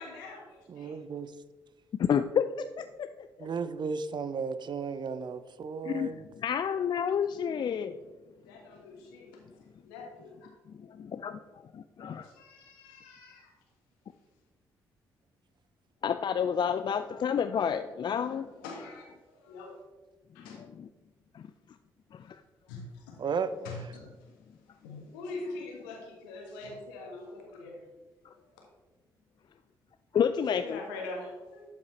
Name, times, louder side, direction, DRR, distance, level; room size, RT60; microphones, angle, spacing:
voice 1, 0.0-1.0 8.4-9.4 9.8-10.5 12.2-13.5 18.2-18.3 18.6-19.8 20.3-20.6 22.7-23.2 23.6-24.3 24.7-27.9 28.3-28.6 30.5-31.6, left 3 dB, 80° left, 0 dB, 1.5 m, -43 dB
voice 2, 0.7-1.3 3.4-6.3 23.2-23.7, right 5 dB, 45° right, 13 dB, 0.5 m, -34 dB
voice 3, 2.0-2.5 2.8-3.5 5.8-8.0 10.8-11.4 11.7-12.3 16.0-18.5 20.5-20.9 21.3-21.4 22.1-22.4 30.1-30.8, left 7 dB, 45° left, 9 dB, 0.4 m, -30 dB
11.5 x 5.3 x 3.2 m, 1.3 s
hypercardioid pair, 45°, 11 cm